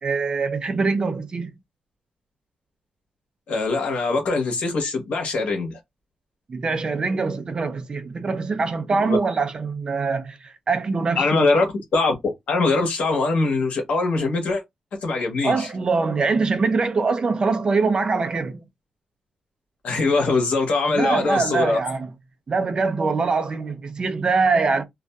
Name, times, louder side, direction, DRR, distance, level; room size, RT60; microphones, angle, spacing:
voice 1, 0.0-1.5 6.5-11.6 15.4-18.7 20.9-22.1 22.5-24.8, right 4 dB, 40° right, 0.5 m, -23 dB
voice 2, 3.5-5.8 8.9-9.2 11.2-11.6 11.9-14.6 15.0-15.7 19.8-21.8, left 3 dB, 75° left, 1.1 m, -22 dB
2.5 x 2.3 x 2.2 m
wide cardioid pair, 120°, 2 cm